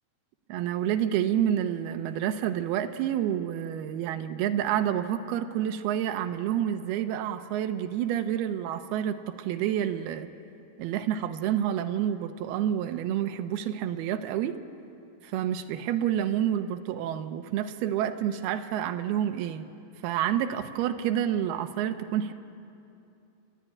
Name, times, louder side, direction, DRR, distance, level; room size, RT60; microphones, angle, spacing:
voice 1, 0.5-10.3 10.8-14.6 15.2-19.7 20.0-22.3, right 10 dB, 85° right, 8 dB, 2.7 m, -28 dB
29.0 x 12.5 x 9.8 m, 2.6 s
omnidirectional pair, 4.4 m